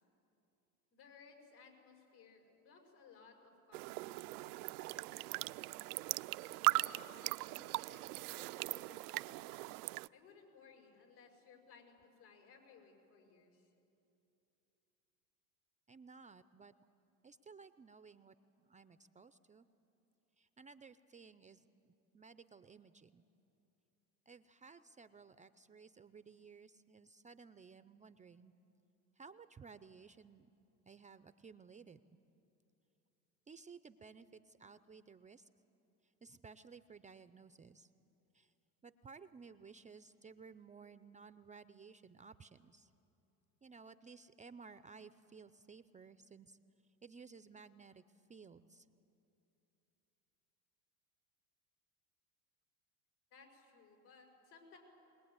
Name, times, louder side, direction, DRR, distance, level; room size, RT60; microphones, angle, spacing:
voice 1, 0.9-5.3 6.7-9.7 10.1-13.7 53.3-54.8, left 5 dB, 75° left, 2 dB, 6.2 m, -62 dB
sound 1, 3.7-10.1, right 20 dB, 75° right, 0.5 m, -39 dB
voice 2, 15.9-16.7 17.2-19.7 20.4-23.2 24.3-28.5 29.2-30.5 30.9-32.0 33.5-35.5 36.2-37.9 38.3-38.5 38.8-42.9 43.6-46.6 47.0-48.0 48.3-48.9, right 5 dB, 15° right, 13 dB, 0.5 m, -57 dB
22.0 x 20.0 x 9.6 m, 2.8 s
hypercardioid pair, 95°, 45 cm